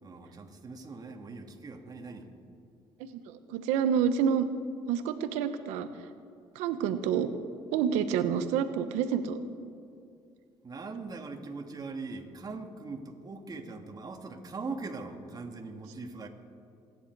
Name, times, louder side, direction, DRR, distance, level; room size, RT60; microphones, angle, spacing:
voice 1, 0.0-2.3 10.6-16.3, right 3 dB, 35° right, 3 dB, 2.2 m, -41 dB
voice 2, 3.0-4.5 4.9-5.9 6.5-7.3 7.7-9.4, right 8 dB, 85° right, 10 dB, 1.0 m, -28 dB
28.0 x 10.5 x 4.7 m, 2.4 s
supercardioid pair, 80°, 12 cm